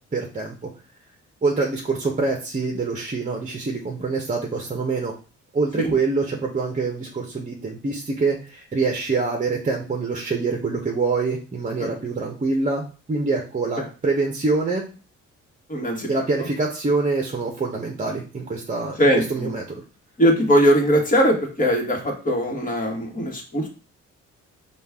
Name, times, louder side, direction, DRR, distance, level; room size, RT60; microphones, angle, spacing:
voice 1, 0.1-0.7 1.4-5.1 5.5-14.8 16.1-19.8, right 3 dB, 25° right, 0 dB, 0.9 m, -25 dB
voice 2, 15.7-16.1 19.0-19.5 20.2-23.7, equal, 25° left, 0 dB, 1.5 m, -20 dB
5.1 x 2.4 x 3.5 m, 0.36 s
cardioid pair, 90°, 30 cm